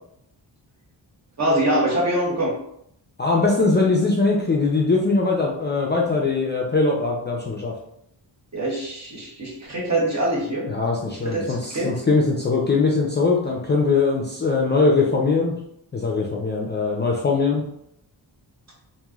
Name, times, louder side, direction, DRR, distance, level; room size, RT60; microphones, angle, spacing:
voice 1, 1.4-2.5 8.5-10.7 11.2-11.9, right 1 dB, 35° right, -2 dB, 0.9 m, -24 dB
voice 2, 3.2-7.7 10.7-15.6 15.9-17.6, left 3 dB, 25° left, -2 dB, 0.4 m, -21 dB
3.0 x 2.6 x 2.3 m, 0.74 s
cardioid pair, 75°, 46 cm